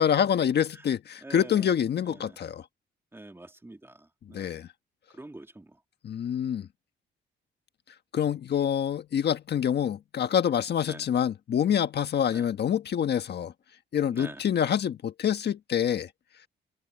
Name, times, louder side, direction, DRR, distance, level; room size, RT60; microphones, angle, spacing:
voice 1, 0.0-2.6 4.3-4.7 6.0-6.7 8.1-13.5 13.9-16.1, left 9 dB, 55° left, 1.5 m, -26 dB
voice 2, 1.2-1.6 2.1-2.4 3.1-3.9 4.3-4.6 5.2-5.6 10.9-11.0 12.3-12.5 14.1-14.4, right 2 dB, 10° right, 3.1 m, -44 dB
cardioid pair, 90°, 20 cm